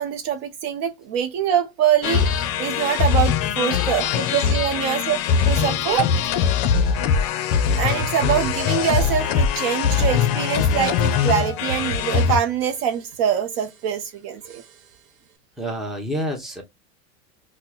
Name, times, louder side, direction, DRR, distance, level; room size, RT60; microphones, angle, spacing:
voice 1, 0.0-2.3 2.6-6.1 7.8-14.6, right 9 dB, 50° right, 0.5 m, -24 dB
sound 1, 2.0-12.4, left 7 dB, 50° left, 0.6 m, -21 dB
voice 2, 3.7-4.2 15.6-16.6, equal, ahead, 0.7 m, -29 dB
Drum Intro, 8.0-9.6 9.8-10.3 10.8-11.4 11.7-13.3 13.5-14.0 14.4-15.1, right 4 dB, 80° right, 0.9 m, -37 dB
4.3 x 2.1 x 2.2 m
hypercardioid pair, 120°, 41 cm